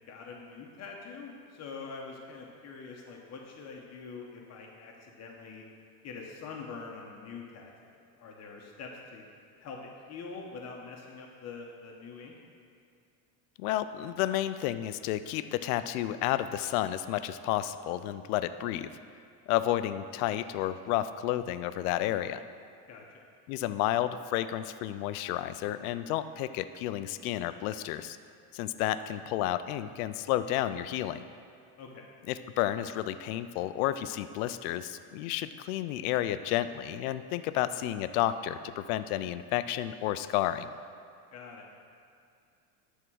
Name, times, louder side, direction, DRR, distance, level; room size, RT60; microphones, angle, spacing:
voice 1, 0.1-5.7 6.0-9.2 9.6-12.3 22.9-23.2 31.8-32.1 41.3-41.7, left 4 dB, 35° left, 0 dB, 1.0 m, -44 dB
voice 2, 13.6-18.9 19.5-22.4 23.5-28.2 28.5-31.2 32.3-40.7, left 13 dB, 80° left, 12 dB, 0.5 m, -31 dB
11.0 x 3.7 x 6.2 m, 2.4 s
supercardioid pair, 130°, 43 cm